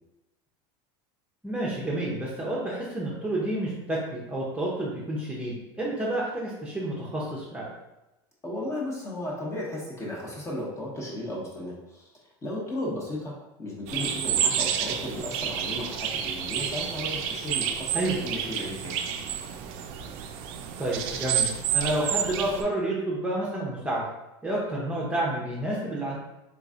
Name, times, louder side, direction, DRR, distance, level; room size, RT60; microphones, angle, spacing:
voice 1, 1.4-7.7 17.9-18.2 20.8-24.0 24.4-26.2, right 1 dB, 10° right, -5 dB, 0.7 m, -29 dB
voice 2, 8.4-12.1 12.4-19.0, left 1 dB, 25° left, -3 dB, 1.0 m, -35 dB
sound 1, 13.9-22.6, right 8 dB, 65° right, 0.4 m, -30 dB
3.6 x 3.0 x 2.5 m, 0.97 s
supercardioid pair, 125°, 12 cm